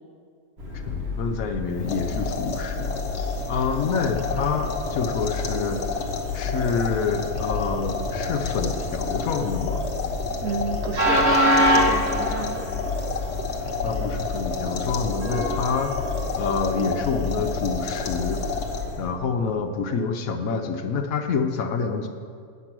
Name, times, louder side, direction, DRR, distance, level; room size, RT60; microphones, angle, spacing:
Train, 0.6-19.1, left 1 dB, 45° right, 1.4 m, -28 dB
voice 1, 0.9-3.0 3.5-5.8 6.3-9.9 13.8-18.4 19.0-22.1, left 5 dB, 65° left, 6 dB, 1.1 m, -27 dB
sound 1, 1.7-19.1, left 4 dB, 50° left, 1.4 m, -31 dB
voice 2, 10.4-12.7, right 4 dB, 65° right, 5 dB, 1.1 m, -32 dB
9.8 x 7.3 x 6.0 m, 2.2 s
omnidirectional pair, 1.7 m